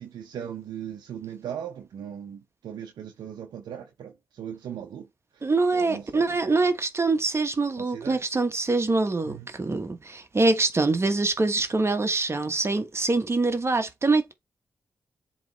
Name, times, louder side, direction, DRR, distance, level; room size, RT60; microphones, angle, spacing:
voice 1, 0.0-5.1 5.3-6.4 7.8-8.2 9.2-9.5, right 9 dB, 80° right, 0.7 m, -38 dB
voice 2, 5.4-14.3, right 3 dB, 40° right, 1.2 m, -24 dB
7.4 x 3.1 x 4.0 m
supercardioid pair, 45°, 7 cm